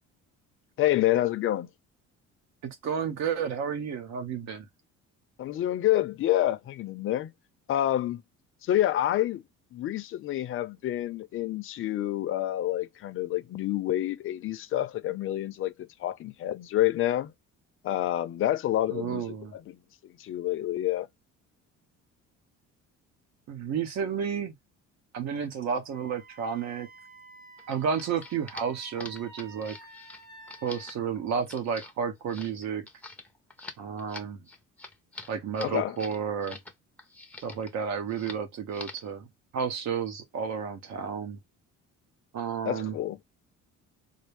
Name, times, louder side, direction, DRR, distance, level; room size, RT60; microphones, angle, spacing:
voice 1, 0.8-1.7 5.4-7.3 7.7-8.2 8.6-9.4 9.7-15.7 16.0-17.3 17.8-19.2 19.5-19.8 20.2-21.1 35.6-36.0 42.6-43.2, left 13 dB, 45° left, 0.5 m, -28 dB
voice 2, 2.6-4.7 18.9-19.5 23.5-24.5 25.1-26.9 27.7-29.8 30.6-32.9 33.8-34.4 35.3-36.6 37.4-39.3 39.5-41.4 42.3-42.9, right 7 dB, 65° right, 1.1 m, -31 dB
Wind instrument woodwind instrument, 25.9-31.0, right 2 dB, 30° right, 1.2 m, -51 dB
sound 1, 27.6-36.7 37.0-37.8 38.1-38.4 38.7-39.1, left 2 dB, 5° left, 0.6 m, -45 dB
4.1 x 2.0 x 3.4 m
cardioid pair, 140°, 29 cm